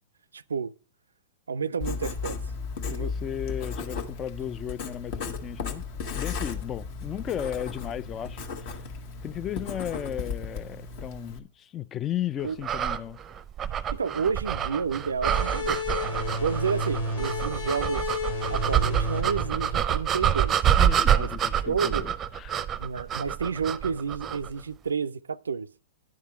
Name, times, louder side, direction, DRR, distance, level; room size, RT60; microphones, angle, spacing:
voice 1, 0.3-0.7 1.5-2.4 2.9-3.1 12.4-12.6 13.9-15.8 16.4-18.2 18.5-20.6 21.1-21.3 21.6-22.1 22.8-25.7, right 6 dB, 90° right, 0.3 m, -30 dB
Writing, 1.8-11.4, left 5 dB, 50° left, 1.2 m, -35 dB
voice 2, 2.9-5.8 6.1-8.8 9.2-13.2 20.7-22.7, left 10 dB, 30° left, 0.3 m, -35 dB
sound 1, 12.6-24.5, right 9 dB, 25° right, 0.6 m, -27 dB
sound 2, 15.2-20.5, left 2 dB, 75° left, 2.2 m, -32 dB
10.5 x 3.7 x 7.0 m
hypercardioid pair, 115°, 0 cm